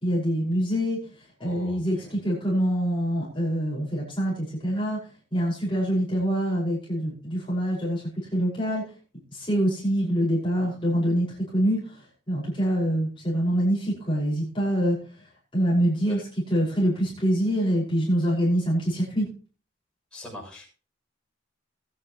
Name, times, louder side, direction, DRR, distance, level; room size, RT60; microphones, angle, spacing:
voice 1, 0.0-1.0 1.4-5.0 5.3-8.8 9.3-15.0 15.5-16.2 16.5-19.3, equal, 25° left, -6 dB, 5.5 m, -25 dB
voice 2, 1.4-2.1 16.1-16.2 20.1-20.8, left 1 dB, 5° left, -4 dB, 7.2 m, -42 dB
20.5 x 9.3 x 3.1 m, 0.38 s
head